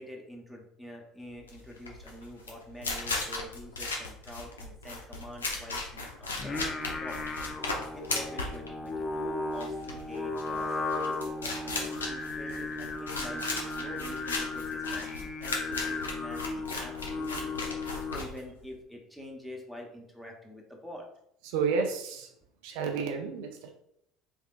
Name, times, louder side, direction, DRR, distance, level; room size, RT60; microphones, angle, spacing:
voice 1, 0.0-7.2 7.9-17.6 18.1-21.1, left 1 dB, ahead, 0.9 m, -46 dB
sound 1, 1.4-18.8, left 3 dB, 85° left, 0.6 m, -36 dB
Singing, 6.3-18.5, left 3 dB, 30° left, 0.5 m, -35 dB
voice 2, 21.4-22.3 22.6-23.7, right 5 dB, 65° right, 0.4 m, -31 dB
3.4 x 3.4 x 2.4 m
figure-of-eight pair, 65°, 0 cm